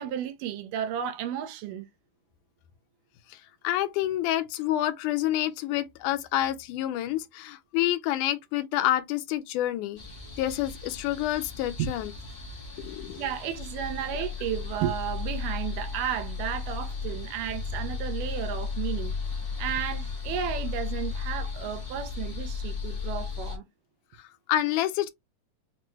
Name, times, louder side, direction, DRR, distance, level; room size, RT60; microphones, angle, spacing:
voice 1, 0.0-1.9 11.8-11.9 13.2-19.1 19.6-23.7, right 9 dB, 90° right, 2.3 m, -33 dB
voice 2, 3.3-10.0 10.4-12.1 12.8-13.3 24.2-25.1, left 13 dB, 80° left, 2.0 m, -28 dB
sound 1, 10.0-23.6, left 5 dB, 30° left, 0.8 m, -35 dB
5.8 x 2.1 x 3.1 m
omnidirectional pair, 3.7 m